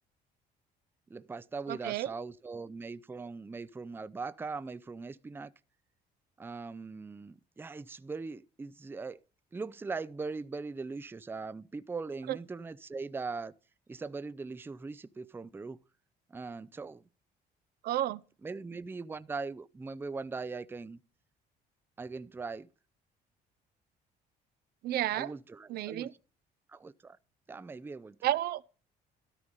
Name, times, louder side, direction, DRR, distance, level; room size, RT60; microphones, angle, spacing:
voice 1, 1.1-5.5 6.4-9.2 9.5-13.5 13.9-15.8 16.3-17.0 18.4-21.0 22.0-22.7 25.1-26.1 26.7-27.2 27.5-28.2, right 4 dB, 15° right, 0.5 m, -40 dB
voice 2, 1.7-2.1 12.3-12.4 17.8-18.2 24.8-25.3 25.7-26.1 28.2-28.7, right 13 dB, 70° right, 0.6 m, -31 dB
13.0 x 4.9 x 5.4 m
cardioid pair, 110°, 17 cm